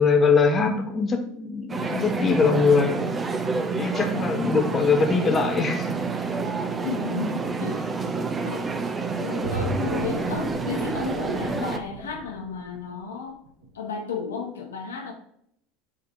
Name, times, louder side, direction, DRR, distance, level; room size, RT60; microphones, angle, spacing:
voice 1, 0.0-3.0 3.8-6.0, left 5 dB, 25° left, 4 dB, 1.1 m, -22 dB
sound 1, 1.7-11.8, right 4 dB, 20° right, 0.7 m, -28 dB
voice 2, 6.8-8.0 8.4-8.7 9.2-13.4 13.7-15.1, left 5 dB, 75° left, 2 dB, 1.3 m, -33 dB
sound 2, 9.4-13.0 13.5-13.7, right 2 dB, 70° right, 1.4 m, -33 dB
7.8 x 3.6 x 3.7 m, 0.71 s
figure-of-eight pair, 75°, 0 cm